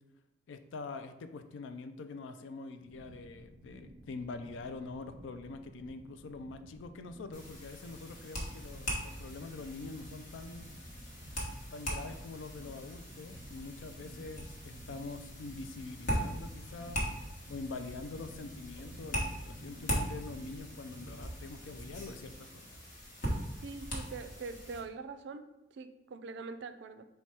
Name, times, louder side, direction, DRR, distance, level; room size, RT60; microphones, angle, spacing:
voice 1, 0.5-10.7 11.7-17.0 17.5-22.8, left 3 dB, 75° left, 9 dB, 0.3 m, -45 dB
sound 1, 2.8-22.3, right 1 dB, 40° right, 0.8 m, -53 dB
sound 2, 7.3-24.8, equal, 50° left, 1.1 m, -40 dB
voice 2, 23.6-25.4 25.7-27.0, right 4 dB, 65° right, 10 dB, 0.3 m, -43 dB
4.3 x 2.2 x 4.6 m, 0.94 s
head